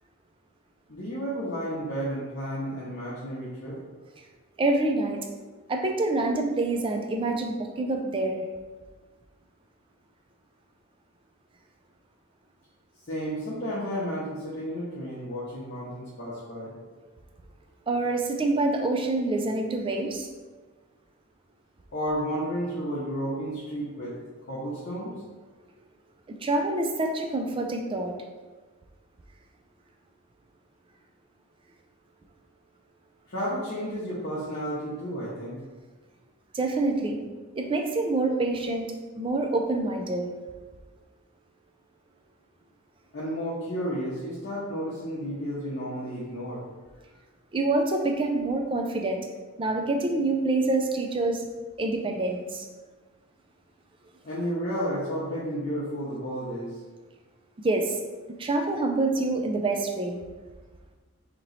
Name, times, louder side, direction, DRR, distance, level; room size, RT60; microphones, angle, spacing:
voice 1, 0.9-3.8 13.1-16.7 21.9-24.2 24.5-25.2 33.3-35.6 43.1-46.6 54.2-56.8, equal, 50° left, -9 dB, 0.8 m, -32 dB
voice 2, 4.6-5.2 5.7-8.4 17.9-20.3 26.4-28.2 36.5-37.2 37.6-38.9 39.2-40.3 47.5-49.2 49.6-51.4 51.8-52.7 57.6-58.0 58.4-60.2, right 2 dB, 25° right, 3 dB, 0.3 m, -26 dB
3.0 x 2.9 x 3.9 m, 1.3 s
head